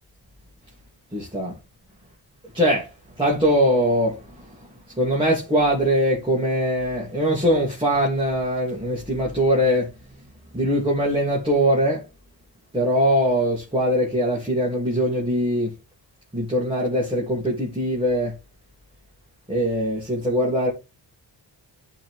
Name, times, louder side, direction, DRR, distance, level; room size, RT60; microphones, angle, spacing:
voice 1, 1.1-1.5 2.5-2.9 3.2-4.2 5.0-9.9 10.5-12.0 12.7-15.7 16.3-18.3 19.5-20.7, equal, 10° right, 3.0 m, -21 dB
11.5 x 4.1 x 3.6 m
cardioid pair, 75°, 44 cm